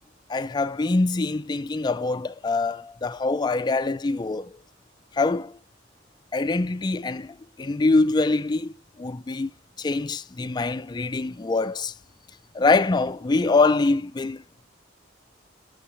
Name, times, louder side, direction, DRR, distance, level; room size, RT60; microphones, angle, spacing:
voice 1, 0.3-4.5 5.2-5.5 6.3-7.3 7.6-8.7 9.0-9.5 9.8-11.9 12.5-14.4, left 3 dB, 20° left, 0.4 m, -24 dB
9.9 x 6.5 x 5.9 m
head